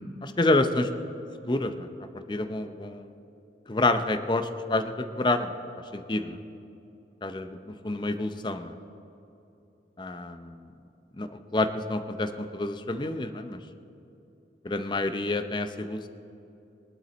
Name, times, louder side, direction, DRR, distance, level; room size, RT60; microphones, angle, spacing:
voice 1, 0.2-0.9 1.5-1.9 2.3-3.1 3.7-5.5 5.9-6.4 7.2-8.8 10.0-10.7 11.2-13.6 14.6-16.1, left 2 dB, 25° left, 9 dB, 0.6 m, -28 dB
19.5 x 12.0 x 4.2 m, 2.8 s
head